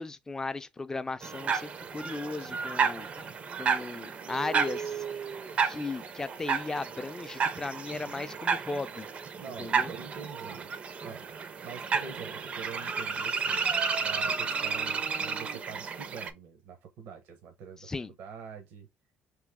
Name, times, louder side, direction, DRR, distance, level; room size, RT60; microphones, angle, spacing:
voice 1, 0.0-3.3 3.6-5.0 5.6-9.1 9.6-9.9 17.8-18.1, left 3 dB, 15° left, 0.4 m, -36 dB
sound 1, 1.2-16.3, right 5 dB, 40° right, 0.5 m, -32 dB
voice 2, 9.4-10.7 11.0-11.2 11.6-13.7 14.0-17.9 18.2-18.9, right 6 dB, 75° right, 0.8 m, -45 dB
3.1 x 2.8 x 3.5 m
cardioid pair, 115°, 3 cm